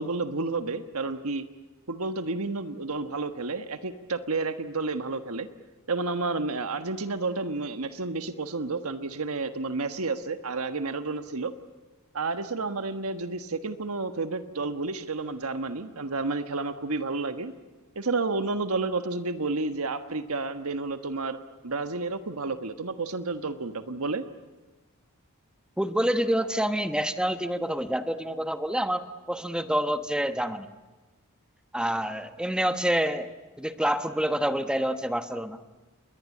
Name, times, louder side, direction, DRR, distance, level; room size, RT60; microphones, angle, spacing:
voice 1, 0.0-1.4 1.9-5.5 5.9-11.5 12.1-17.5 17.9-21.4 21.6-24.2, right 3 dB, 70° right, 9 dB, 1.4 m, -31 dB
voice 2, 25.8-30.7 31.7-33.3 33.6-35.6, equal, 5° right, 9 dB, 1.2 m, -27 dB
29.0 x 22.0 x 8.5 m, 1.2 s
head